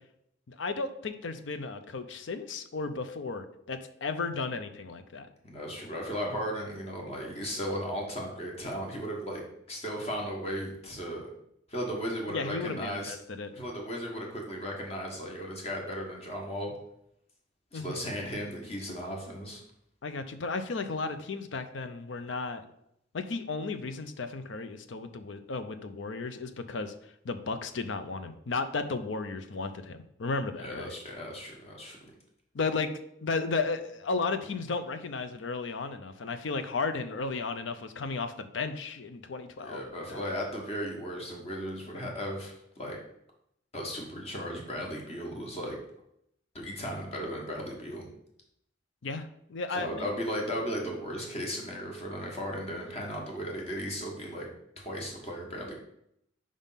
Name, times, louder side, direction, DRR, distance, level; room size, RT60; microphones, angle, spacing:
voice 1, 0.5-5.3 12.3-13.5 17.7-18.0 20.0-22.6 23.1-26.9 27.2-30.9 32.5-32.9 33.2-39.8 40.1-40.2 49.0-50.1, left 4 dB, 75° left, 10 dB, 0.5 m, -34 dB
voice 2, 5.4-9.4 9.7-11.3 11.7-13.1 13.5-16.7 17.7-19.6 30.6-32.1 39.6-43.0 43.7-45.8 46.5-48.1 49.7-54.5 54.8-55.7, equal, 35° left, 0 dB, 1.4 m, -36 dB
5.0 x 3.6 x 5.6 m, 0.76 s
head